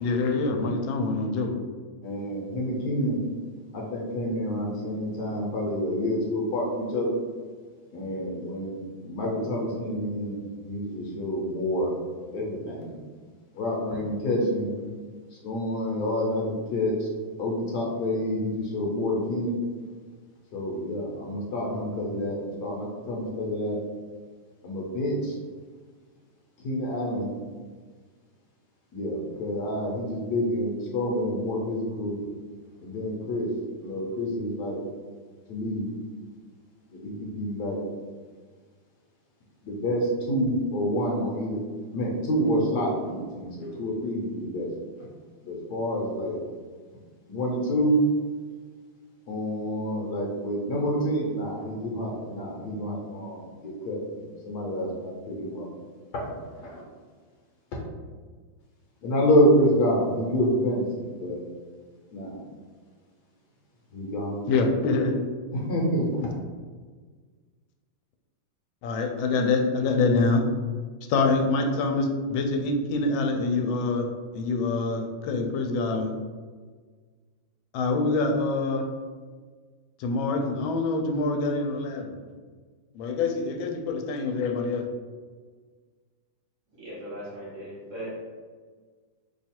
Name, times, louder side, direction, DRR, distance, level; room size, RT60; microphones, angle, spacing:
voice 1, 0.0-1.6 64.5-65.2 66.2-66.3 68.8-70.4 71.1-74.1 74.3-76.1 77.7-78.8 80.0-82.2 82.9-84.8, left 3 dB, 85° left, 3 dB, 1.3 m, -25 dB
voice 2, 2.0-3.2 3.7-7.1 7.9-8.8 9.0-10.4 10.6-12.0 12.3-12.9 13.5-14.7 15.4-17.1 17.4-19.5 20.5-23.8 24.6-25.3 26.6-27.3 28.9-32.2 32.8-33.5 33.8-34.8 35.5-35.9 36.9-37.8 39.6-41.6 41.9-44.7 45.4-46.4 47.3-47.9 49.3-55.7 56.1-56.2 56.6-56.8 57.7-57.8 59.0-61.4 62.1-62.4 63.9-64.4 65.5-66.1, equal, 65° left, -2 dB, 1.2 m, -28 dB
voice 3, 86.8-88.2, equal, 45° right, -7 dB, 1.3 m, -38 dB
3.1 x 2.4 x 4.2 m, 1.5 s
omnidirectional pair, 2.1 m